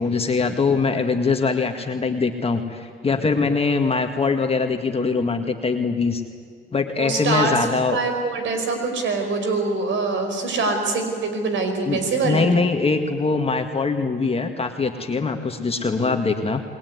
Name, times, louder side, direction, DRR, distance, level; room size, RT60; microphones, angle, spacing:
voice 1, 0.0-6.2 6.7-8.0 11.9-16.6, left 4 dB, 30° left, 4 dB, 1.9 m, -22 dB
voice 2, 7.0-7.6 7.9-12.5, right 3 dB, 70° right, 5 dB, 5.3 m, -24 dB
27.5 x 20.5 x 9.6 m, 2.1 s
cardioid pair, 90°, 20 cm